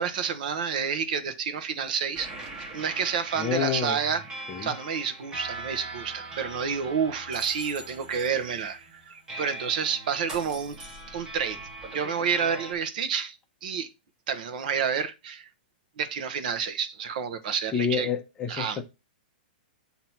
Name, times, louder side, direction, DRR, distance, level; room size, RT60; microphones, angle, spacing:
voice 1, 0.0-2.3 2.7-10.8 11.1-11.6 11.9-13.9 14.3-15.5 16.0-18.1 18.5-18.8, right 6 dB, 60° right, 0.9 m, -29 dB
sound 1, 2.2-12.7, right 2 dB, 15° right, 1.1 m, -41 dB
voice 2, 3.4-4.0 4.5-4.7 17.7-18.8, left 7 dB, 15° left, 0.7 m, -28 dB
7.7 x 2.9 x 5.7 m
hypercardioid pair, 155°, 5 cm